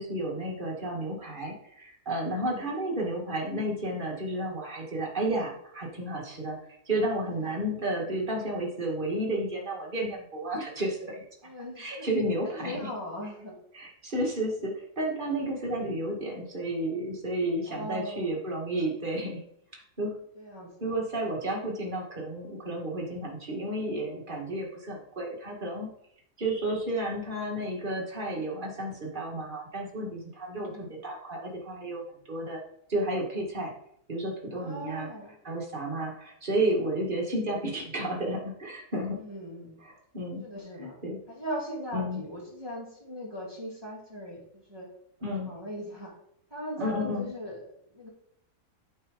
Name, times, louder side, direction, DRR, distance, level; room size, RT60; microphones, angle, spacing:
voice 1, 0.0-6.6 6.9-11.2 11.8-12.9 13.7-19.4 20.0-20.2 20.8-25.9 26.4-32.0 32.3-32.6 32.9-33.7 34.1-35.1 35.4-39.2 39.8-40.4 40.8-41.2 41.9-42.2 45.2-45.5 46.8-47.3, right 1 dB, 30° right, -1 dB, 1.8 m, -32 dB
voice 2, 2.3-2.7 7.3-7.5 11.4-12.1 12.4-13.5 17.7-18.3 20.4-20.7 30.6-30.9 34.5-35.4 39.1-39.8 40.4-41.0 41.3-44.9 45.5-46.1 46.5-47.6 47.9-48.1, equal, 15° right, -5 dB, 2.2 m, -39 dB
8.5 x 3.7 x 5.0 m, 0.70 s
omnidirectional pair, 1.7 m